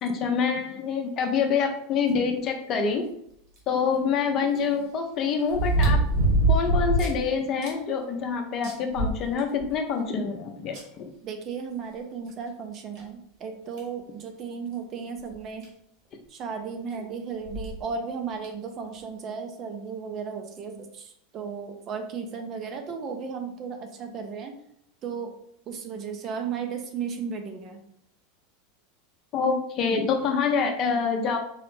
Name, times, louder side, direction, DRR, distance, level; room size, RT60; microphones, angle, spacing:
voice 1, 0.0-3.0 3.7-6.0 6.5-11.0 29.3-31.4, left 5 dB, 45° left, 5 dB, 0.6 m, -26 dB
sound 1, 3.6-3.7 5.5-7.2 7.6-7.7 8.2-8.3 8.6-9.7 10.7-10.8 12.3-12.4 12.9-13.0 13.8-14.0 15.3-15.4 15.6-15.7 17.4-17.7 18.4-18.5, right 2 dB, 65° right, 1.5 m, -23 dB
voice 2, 11.2-15.7 16.3-24.5 25.0-25.3 25.7-27.8, right 6 dB, 40° right, 5 dB, 0.6 m, -35 dB
3.9 x 2.0 x 3.1 m, 0.71 s
hypercardioid pair, 100°, 0 cm